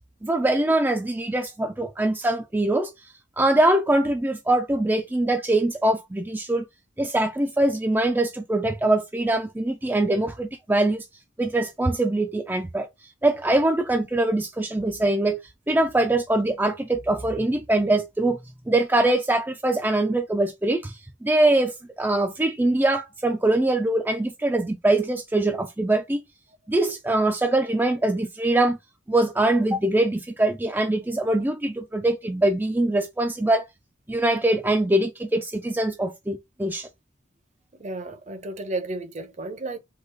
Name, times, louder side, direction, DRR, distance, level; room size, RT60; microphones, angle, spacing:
voice 1, 0.2-2.9 3.4-6.7 7.0-11.1 11.4-12.9 13.2-18.4 18.7-26.2 26.7-28.8 29.1-33.6 34.1-36.9, right 2 dB, 10° right, 0.4 m, -23 dB
voice 2, 37.8-39.8, right 2 dB, 35° right, 0.7 m, -32 dB
3.9 x 2.9 x 3.8 m
head